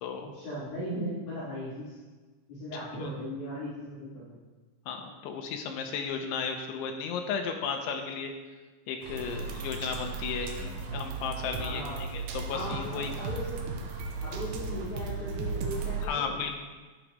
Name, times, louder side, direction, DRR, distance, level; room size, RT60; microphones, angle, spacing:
voice 1, 0.3-2.0 2.5-4.4 11.6-12.0 12.5-13.6 14.2-16.3, equal, 60° left, -13 dB, 6.3 m, -37 dB
voice 2, 4.9-8.3 8.9-13.1 16.0-16.6, left 6 dB, 85° left, 3 dB, 3.3 m, -34 dB
sound 1, 9.0-16.0, right 4 dB, 70° right, 2.6 m, -36 dB
13.0 x 10.0 x 3.4 m, 1.3 s
omnidirectional pair, 5.4 m